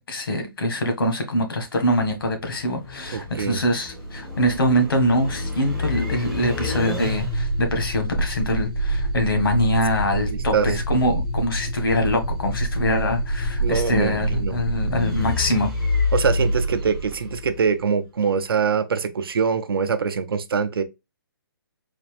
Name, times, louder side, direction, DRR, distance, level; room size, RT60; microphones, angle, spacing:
voice 1, 0.0-15.7, equal, 70° left, 1.5 m, -24 dB
sound 1, 2.0-17.9, equal, ahead, 0.6 m, -27 dB
voice 2, 3.1-3.6 10.3-10.7 13.6-14.6 16.1-20.8, right 6 dB, 75° right, 0.7 m, -23 dB
4.2 x 2.6 x 3.2 m
hypercardioid pair, 175°, 12 cm